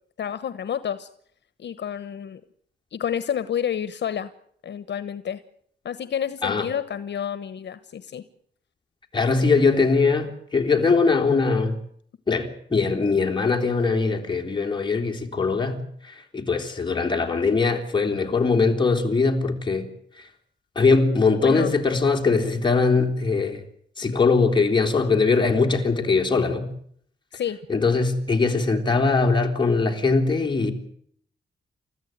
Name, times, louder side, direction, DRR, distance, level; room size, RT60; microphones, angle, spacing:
voice 1, 0.2-1.1 1.6-2.4 2.9-4.3 4.6-5.4 5.8-8.2 21.4-21.7 27.3-27.6, left 9 dB, 70° left, 13 dB, 1.1 m, -29 dB
voice 2, 9.1-11.8 12.3-15.8 16.1-19.9 20.8-23.6 24.0-26.7 27.7-30.7, left 4 dB, 25° left, 2 dB, 3.6 m, -21 dB
29.5 x 14.0 x 9.3 m, 0.66 s
wide cardioid pair, 145°, 19 cm